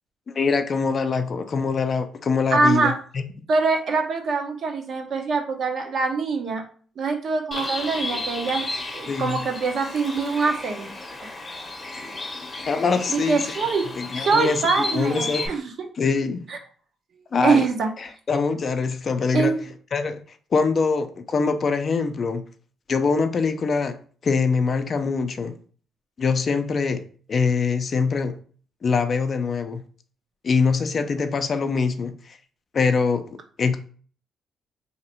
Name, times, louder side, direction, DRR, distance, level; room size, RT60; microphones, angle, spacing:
voice 1, 0.3-3.2 9.1-9.4 12.7-13.6 14.0-14.6 14.9-15.5 16.0-16.5 17.3-17.6 18.0-19.6 19.9-20.2 20.5-22.4 22.9-24.0 24.2-25.5 26.2-27.0 27.3-28.4 28.8-29.8 30.4-32.4 32.7-33.2 33.6-33.8, left 5 dB, 45° left, 0.4 m, -23 dB
voice 2, 2.5-3.0 3.5-6.6 7.0-8.6 8.9-10.9 13.1-13.9 14.1-15.9 16.5-16.6 17.4-17.9 19.3-19.6, right 4 dB, 60° right, 0.8 m, -23 dB
Bird, 7.5-15.5, left 2 dB, 30° left, 0.8 m, -33 dB
2.8 x 2.6 x 4.2 m
cardioid pair, 90°, 0 cm